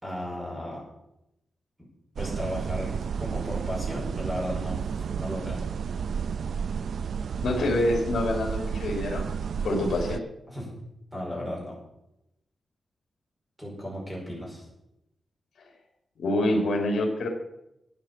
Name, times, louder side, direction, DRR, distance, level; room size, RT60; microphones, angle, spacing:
voice 1, 0.0-0.8 2.2-4.8 5.1-5.6 9.6-9.8 10.5-10.7 11.1-11.7 13.6-14.7, equal, 10° right, -3 dB, 5.9 m, -35 dB
sound 1, 2.2-10.2, right 6 dB, 65° right, 0.3 m, -32 dB
voice 2, 7.4-9.3 9.6-10.2 16.2-17.3, left 1 dB, 65° left, 0 dB, 2.8 m, -26 dB
12.5 x 8.8 x 7.3 m, 0.86 s
wide cardioid pair, 165°, 0 cm